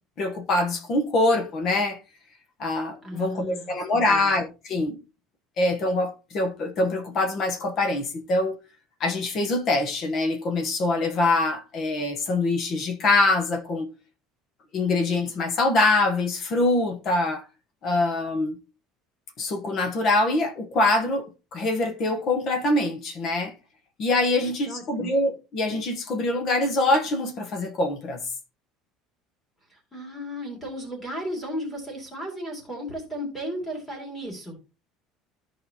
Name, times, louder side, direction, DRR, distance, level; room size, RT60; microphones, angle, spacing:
voice 1, 0.2-2.0 2.6-5.0 5.6-8.6 9.0-13.9 14.7-17.5 17.8-18.6 19.4-23.5 24.0-28.2, left 2 dB, 35° left, 1.1 m, -24 dB
voice 2, 3.0-3.7 4.0-4.3 24.4-25.1 29.7-34.6, equal, 10° left, 2.8 m, -35 dB
14.0 x 4.8 x 2.9 m
cardioid pair, 175°, 0 cm